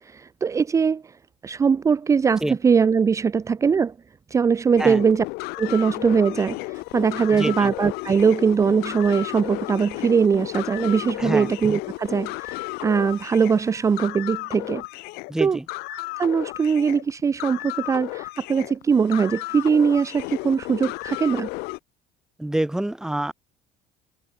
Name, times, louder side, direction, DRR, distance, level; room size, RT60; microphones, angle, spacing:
voice 1, 0.1-1.0 1.4-3.9 4.3-5.2 5.6-12.6 12.8-14.8 15.4-15.6 15.9-21.5, right 6 dB, 20° right, 1.0 m, -21 dB
sound 1, 4.8-21.8, left 24 dB, 75° left, 2.8 m, -33 dB
voice 2, 7.3-7.7 11.2-11.5 15.3-15.6 22.4-23.3, right 1 dB, 5° right, 1.3 m, -27 dB
cardioid pair, 170°, 16 cm